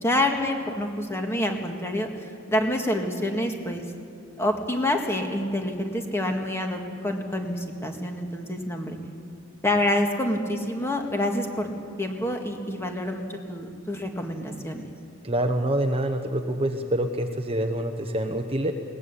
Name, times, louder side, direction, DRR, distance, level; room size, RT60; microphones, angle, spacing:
voice 1, 0.0-3.8 4.4-9.0 9.6-11.7 12.0-14.9, left 1 dB, 10° left, 3 dB, 2.0 m, -27 dB
voice 2, 15.2-18.7, right 1 dB, 30° right, 5 dB, 1.0 m, -26 dB
21.5 x 18.5 x 8.4 m, 2.4 s
head